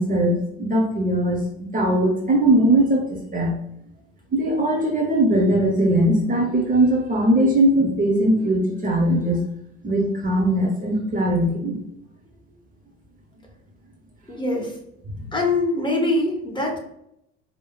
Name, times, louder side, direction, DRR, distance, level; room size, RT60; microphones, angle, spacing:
voice 1, 0.0-3.5 4.3-9.4 9.8-11.8 15.1-15.3, right 1 dB, 20° right, -1 dB, 0.8 m, -20 dB
voice 2, 14.3-14.7 15.3-16.8, left 2 dB, 15° left, 0 dB, 1.1 m, -23 dB
4.6 x 2.8 x 2.3 m, 0.76 s
figure-of-eight pair, 55°, 37 cm